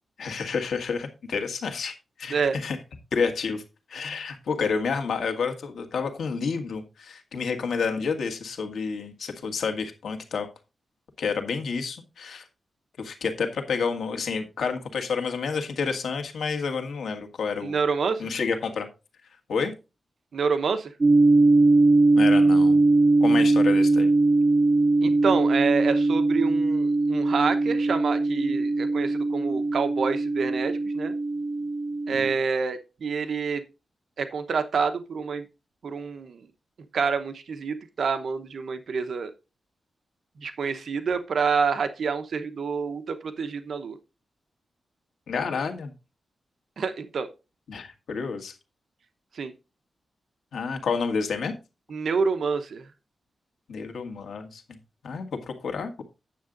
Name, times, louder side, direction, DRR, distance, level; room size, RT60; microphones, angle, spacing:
voice 1, 0.2-1.9 2.2-2.8 3.1-3.6 3.9-10.5 11.2-12.4 13.0-17.8 18.2-18.9 19.5-19.7 22.1-22.8 23.2-24.1 32.1-32.2 45.3-45.9 47.7-48.5 50.5-51.5 53.7-54.8 55.0-56.0, left 5 dB, 90° left, 5 dB, 1.6 m, -29 dB
voice 2, 17.6-18.3 20.3-20.9 25.0-31.1 32.1-33.6 34.2-35.4 35.8-36.4 36.9-39.3 40.4-44.0 46.8-47.3 49.3-49.5 51.9-52.8, right 5 dB, 65° right, 9 dB, 0.9 m, -27 dB
sound 1, 21.0-32.3, right 2 dB, 25° right, 2.1 m, -21 dB
9.3 x 7.3 x 3.9 m, 0.29 s
wide cardioid pair, 130°, 0 cm